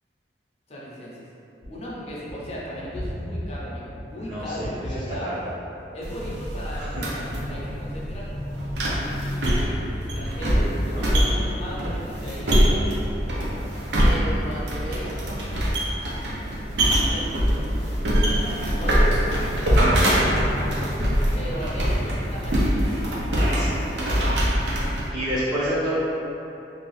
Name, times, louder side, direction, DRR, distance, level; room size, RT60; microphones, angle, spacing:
voice 1, 0.7-1.3 1.7-5.3 5.9-8.3 8.8-13.0 14.0-16.2 16.8-20.8 21.3-23.2 23.8-24.2, equal, 35° left, -6 dB, 0.5 m, -37 dB
Gunshot gunfire, 1.6-11.3 11.7-13.1, equal, 75° left, 0.7 m, -37 dB
voice 2, 4.2-4.7 5.2-5.4 6.8-7.0 10.9-11.2 23.4-23.8 24.6-24.8 25.1-26.0, equal, 25° right, -12 dB, 0.4 m, -29 dB
sound 1, 6.0-25.1, equal, 75° right, 0.5 m, -23 dB
2.7 x 2.3 x 3.1 m, 2.8 s
head